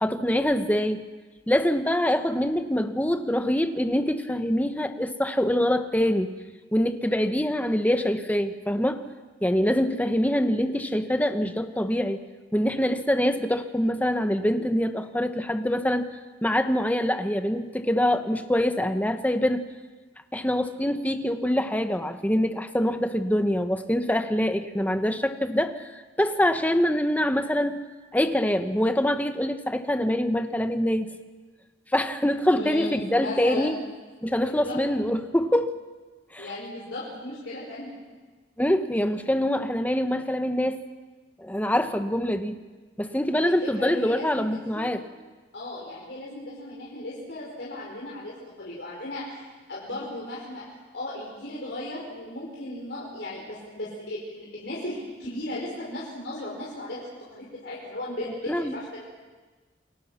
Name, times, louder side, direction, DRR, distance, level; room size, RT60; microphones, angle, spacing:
voice 1, 0.0-1.0 1.5-6.3 6.7-9.0 9.4-12.2 12.5-16.1 16.4-19.6 20.3-27.8 28.1-31.1 31.9-33.8 34.2-35.7 36.3-36.5 38.6-40.8 41.4-42.6 43.0-45.0 58.5-58.7, equal, 10° left, 7 dB, 1.2 m, -24 dB
voice 2, 32.5-33.7 34.4-34.8 36.4-37.9 43.4-45.0 45.5-50.6 50.9-59.0, left 1 dB, 80° left, -5 dB, 5.5 m, -36 dB
29.0 x 22.0 x 5.9 m, 1.3 s
head